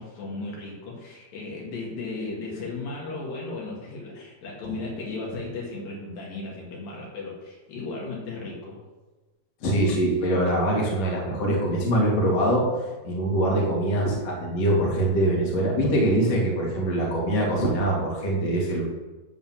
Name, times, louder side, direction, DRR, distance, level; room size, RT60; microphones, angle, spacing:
voice 1, 0.0-8.8, left 3 dB, 70° left, -3 dB, 3.5 m, -35 dB
voice 2, 9.6-12.7 13.0-18.8, right 1 dB, 45° left, -3 dB, 2.7 m, -23 dB
11.5 x 4.0 x 7.5 m, 1.2 s
omnidirectional pair, 4.4 m